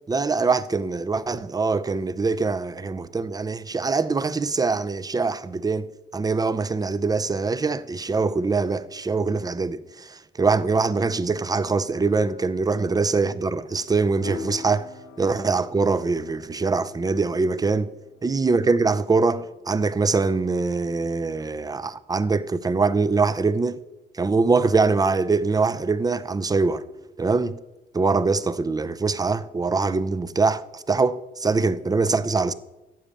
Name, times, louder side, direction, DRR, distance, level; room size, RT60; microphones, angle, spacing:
voice 1, 0.1-5.9 6.1-14.9 15.2-17.9 18.2-23.8 24.1-26.8 27.2-27.6 27.9-32.5, right 4 dB, 20° right, 0.6 m, -23 dB
sound 1, 10.9-20.6, left 5 dB, 80° left, 1.8 m, -44 dB
10.5 x 7.2 x 8.5 m
cardioid pair, 90°, 20 cm